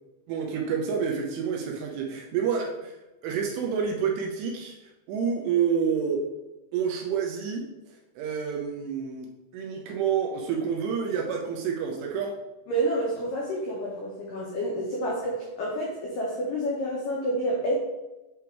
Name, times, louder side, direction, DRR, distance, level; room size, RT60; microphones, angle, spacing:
voice 1, 0.3-3.0 3.2-4.8 5.1-6.3 6.7-7.7 8.2-9.3 9.5-12.3, right 7 dB, 80° right, 1 dB, 2.6 m, -28 dB
voice 2, 12.7-17.7, right 1 dB, 80° left, -4 dB, 1.9 m, -29 dB
8.1 x 3.4 x 4.5 m, 1.0 s
omnidirectional pair, 5.4 m